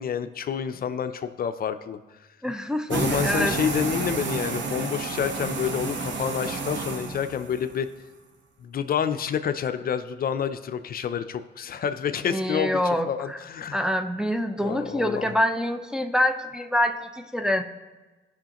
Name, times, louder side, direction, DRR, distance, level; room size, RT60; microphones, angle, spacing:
voice 1, 0.0-2.0 2.9-7.9 8.6-13.8 14.6-15.3, left 8 dB, 50° left, 10 dB, 0.5 m, -28 dB
voice 2, 2.4-3.6 12.3-13.4 13.7-17.6, left 1 dB, 5° right, 5 dB, 0.5 m, -26 dB
sound 1, 2.9-7.7, right 4 dB, 70° right, 1.0 m, -30 dB
15.0 x 5.7 x 2.9 m, 1.2 s
cardioid pair, 90°, 20 cm